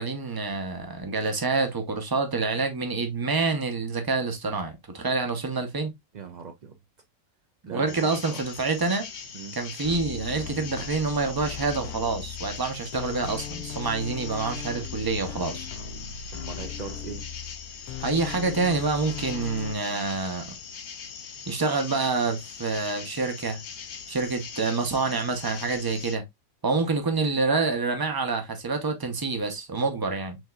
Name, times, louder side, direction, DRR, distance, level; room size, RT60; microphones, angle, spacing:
voice 1, 0.0-5.9 7.7-9.1 9.6-15.7 18.0-20.6 21.5-23.6 24.1-26.2 26.6-30.4, right 3 dB, 25° right, 0.5 m, -27 dB
voice 2, 6.1-6.7 7.6-8.4 9.3-9.6 16.3-17.3, right 6 dB, 85° right, 0.4 m, -40 dB
sound 1, 7.9-26.2, left 6 dB, 55° left, 0.9 m, -41 dB
sound 2, 9.8-19.7, left 7 dB, 85° left, 1.2 m, -38 dB
6.3 x 2.8 x 2.3 m
omnidirectional pair, 1.5 m